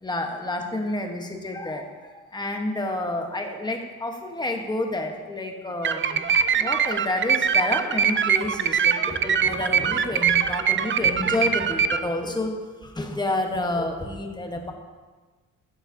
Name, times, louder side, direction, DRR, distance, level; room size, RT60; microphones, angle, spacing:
voice 1, 0.0-14.7, left 1 dB, 15° left, 3 dB, 1.1 m, -29 dB
sound 1, 5.8-12.0, right 7 dB, 40° right, 0.4 m, -23 dB
11.0 x 9.0 x 2.7 m, 1.3 s
cardioid pair, 110°, 31 cm